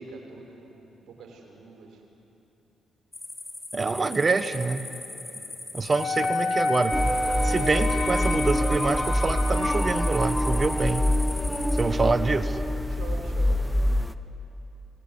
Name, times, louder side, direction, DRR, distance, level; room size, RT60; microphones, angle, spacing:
voice 1, 0.0-2.0 5.3-5.5 12.9-13.7, right 4 dB, 65° right, 1 dB, 6.3 m, -44 dB
sound 1, 3.1-11.8, left 2 dB, 30° left, 4.8 m, -39 dB
voice 2, 3.7-4.8 5.7-7.0 7.4-11.1 11.8-12.6, right 3 dB, 40° right, 11 dB, 1.3 m, -26 dB
Wind instrument woodwind instrument, 5.9-9.8, left 2 dB, 70° left, 2.8 m, -29 dB
sound 2, 6.9-14.1, left 1 dB, 5° left, 1.2 m, -25 dB
27.0 x 19.5 x 9.9 m, 2.9 s
hypercardioid pair, 45°, 0 cm